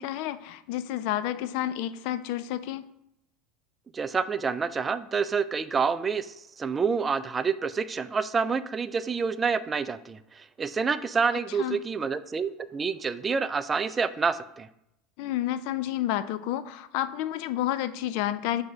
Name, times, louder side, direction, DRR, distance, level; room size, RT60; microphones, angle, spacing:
voice 1, 0.0-2.9 11.6-11.8 15.2-18.6, left 12 dB, 65° left, 14 dB, 0.4 m, -30 dB
voice 2, 3.9-14.7, right 5 dB, 25° right, 14 dB, 0.4 m, -28 dB
7.6 x 2.8 x 4.6 m, 0.79 s
hypercardioid pair, 90°, 0 cm